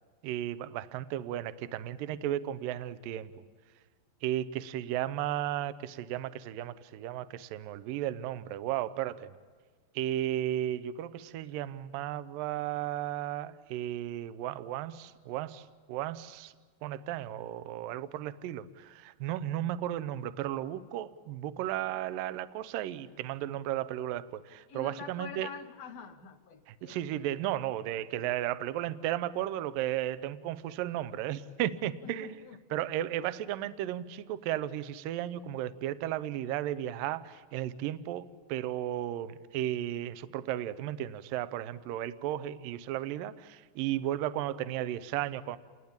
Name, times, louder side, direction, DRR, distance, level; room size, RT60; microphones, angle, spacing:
voice 1, 0.2-3.3 4.2-9.3 9.9-16.5 16.8-25.5 26.7-32.4 32.7-45.6, right 12 dB, 75° right, 14 dB, 2.1 m, -34 dB
voice 2, 24.7-27.0 32.0-32.6, left 5 dB, 90° left, 4 dB, 1.4 m, -45 dB
28.5 x 20.5 x 8.7 m, 1.5 s
omnidirectional pair, 5.0 m